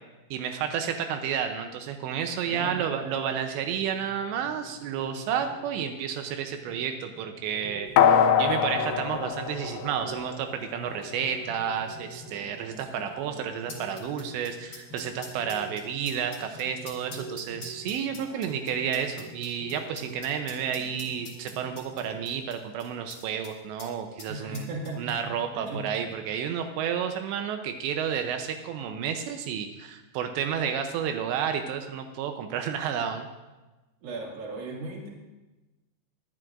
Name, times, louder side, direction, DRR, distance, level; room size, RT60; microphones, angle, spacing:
voice 1, 0.3-24.7 25.0-33.3, right 8 dB, 85° right, 6 dB, 2.9 m, -31 dB
voice 2, 2.5-2.9 24.3-25.0 25.2-26.2 34.0-35.1, right 2 dB, 45° right, -1 dB, 2.5 m, -37 dB
sound 1, 3.8-22.2, right 2 dB, 20° right, 4.2 m, -46 dB
sound 2, 8.0-10.5 10.9-11.0, left 8 dB, 80° left, 2.7 m, -23 dB
sound 3, 8.8-9.0 9.8-9.9 10.9-23.5 23.8-23.9 24.2-25.4 25.7-25.8, left 3 dB, 40° left, 1.9 m, -47 dB
21.0 x 11.0 x 2.5 m, 1.1 s
omnidirectional pair, 5.2 m